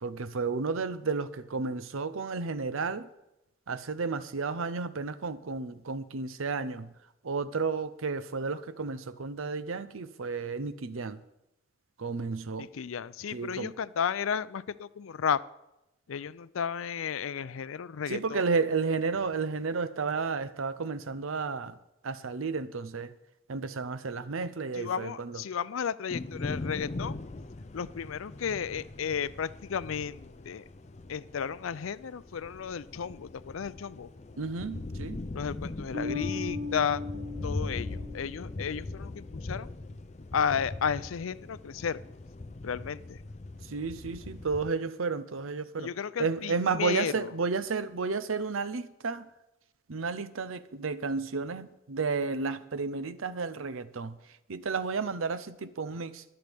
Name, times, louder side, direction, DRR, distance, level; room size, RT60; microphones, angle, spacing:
voice 1, 0.0-3.1 3.7-6.9 7.2-11.2 12.0-12.7 13.3-13.7 18.1-21.8 22.0-23.1 23.5-25.4 34.4-35.2 43.6-45.9 46.2-49.3 49.9-54.2 54.5-56.2, right 4 dB, 85° right, 14 dB, 0.7 m, -32 dB
voice 2, 12.6-15.4 16.1-18.4 24.7-27.2 27.7-30.6 31.1-34.1 35.3-37.0 37.4-39.7 40.3-42.0 42.6-43.2 45.8-47.3, left 7 dB, 85° left, 17 dB, 0.5 m, -33 dB
sound 1, 26.1-44.7, left 2 dB, 35° left, 0.5 m, -40 dB
Bass guitar, 35.9-39.0, left 3 dB, 55° right, 1.1 m, -38 dB
22.5 x 7.9 x 3.5 m, 0.90 s
head